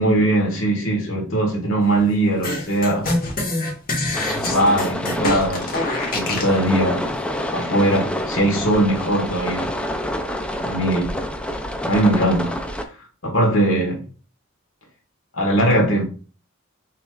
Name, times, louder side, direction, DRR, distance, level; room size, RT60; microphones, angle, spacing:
voice 1, 0.0-3.1 4.4-5.8 6.1-7.1 7.5-9.7 10.6-11.2 11.9-12.6 13.2-14.0 15.3-16.0, right 1 dB, 75° left, 1.6 m, -20 dB
sound 1, 2.4-6.6, left 2 dB, 45° left, 1.3 m, -25 dB
sound 2, 4.1-12.8, equal, 5° left, 0.3 m, -27 dB
5.5 x 3.1 x 2.3 m
head